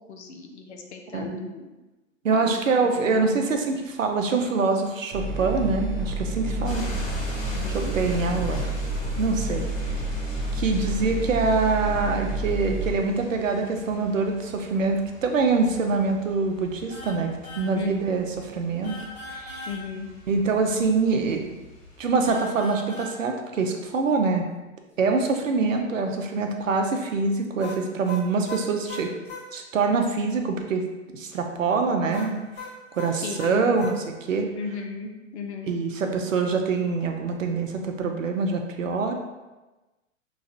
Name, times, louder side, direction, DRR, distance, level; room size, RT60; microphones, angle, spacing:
voice 1, 0.0-1.7 2.3-3.2 6.4-7.0 7.5-7.9 17.7-18.1 19.7-20.1 33.2-33.7 34.5-35.7, left 5 dB, 60° left, 3 dB, 0.8 m, -36 dB
voice 2, 1.1-1.5 2.2-6.9 7.7-8.6 9.2-9.6 10.5-17.3 17.6-18.3 18.5-18.9 19.3-19.7 20.3-21.4 22.0-24.5 25.0-29.1 29.5-30.9 31.1-32.3 32.9-34.0 34.3-34.5 35.7-39.1, right 4 dB, 75° right, 4 dB, 0.7 m, -24 dB
sound 1, 5.1-12.9, right 1 dB, 10° right, 0.4 m, -29 dB
sound 2, 6.6-22.4, left 1 dB, 80° left, 1.3 m, -42 dB
sound 3, 16.9-17.2 17.4-17.7 18.8-19.8 22.2-23.2 27.6-29.5 32.1-34.0, left 3 dB, 25° left, 1.4 m, -39 dB
4.7 x 3.1 x 2.6 m, 1.1 s
figure-of-eight pair, 110°, 39 cm